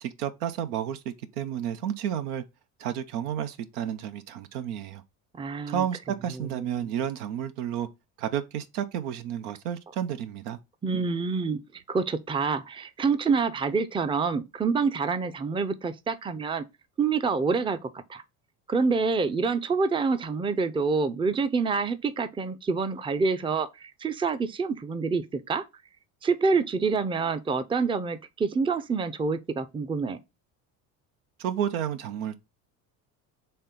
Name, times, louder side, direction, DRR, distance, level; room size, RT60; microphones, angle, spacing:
voice 1, 0.0-2.4 2.8-5.0 5.7-7.9 8.2-10.6 31.4-32.4, right 9 dB, 85° right, 0.7 m, -31 dB
voice 2, 5.3-5.9 6.3-6.9 10.8-16.6 17.0-18.2 18.7-25.7 26.2-30.2, right 4 dB, 10° right, 0.4 m, -27 dB
4.4 x 3.3 x 3.6 m
hypercardioid pair, 70°, 43 cm